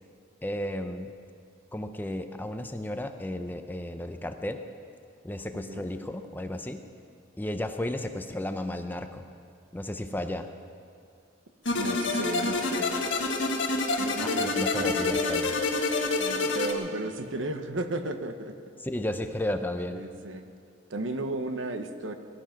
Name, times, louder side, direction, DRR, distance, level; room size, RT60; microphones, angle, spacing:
voice 1, 0.4-1.1 1.7-4.6 5.2-6.8 7.4-9.2 9.7-10.5 14.2-15.5 18.8-20.0, left 1 dB, 10° left, 7 dB, 0.6 m, -33 dB
voice 2, 5.5-5.9 11.8-13.0 14.0-15.4 16.2-18.5 19.9-20.5 20.9-22.1, right 1 dB, 75° right, 7 dB, 1.1 m, -34 dB
sound 1, 11.7-16.7, left 3 dB, 70° left, 1.8 m, -27 dB
19.5 x 11.5 x 5.9 m, 2.3 s
head